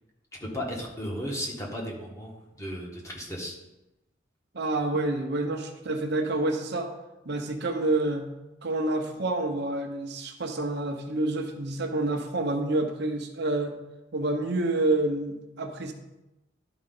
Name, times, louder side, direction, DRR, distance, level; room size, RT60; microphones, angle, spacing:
voice 1, 0.4-3.6, equal, 15° left, -2 dB, 1.4 m, -35 dB
voice 2, 4.5-6.9 7.2-8.3 8.6-13.7 14.1-15.9, right 2 dB, 60° right, 3 dB, 0.9 m, -28 dB
12.0 x 4.9 x 3.9 m, 0.96 s
head